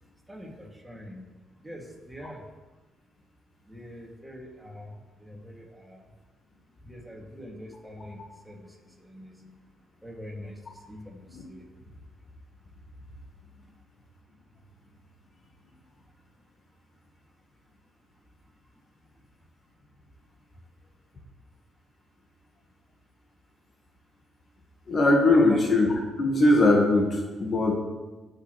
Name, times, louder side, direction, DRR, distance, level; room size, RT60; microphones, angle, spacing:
voice 1, 0.3-1.3 1.6-2.4 3.7-4.9 5.2-6.1 6.8-9.3 10.0-11.6 25.3-25.6, equal, 5° right, -2 dB, 2.4 m, -43 dB
voice 2, 24.9-27.8, left 2 dB, 45° left, 1 dB, 1.5 m, -21 dB
16.5 x 6.6 x 3.2 m, 1.2 s
cardioid pair, 90°, 0 cm